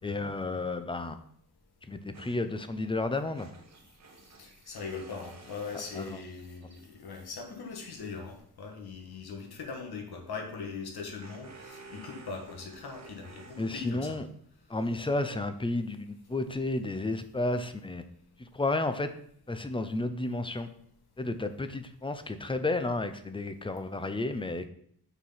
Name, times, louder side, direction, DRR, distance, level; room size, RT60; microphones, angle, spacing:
voice 1, 0.0-1.2 1.9-3.5 5.9-6.2 13.6-14.3 14.7-18.0 18.4-19.1 19.5-20.7 21.2-24.7, left 2 dB, 15° left, 9 dB, 0.5 m, -32 dB
sound 1, 2.1-7.1 10.1-14.3, right 3 dB, 45° right, 1.2 m, -53 dB
voice 2, 4.4-14.2, left 4 dB, 75° left, 2 dB, 1.6 m, -41 dB
6.7 x 4.7 x 5.6 m, 0.66 s
wide cardioid pair, 145°, 39 cm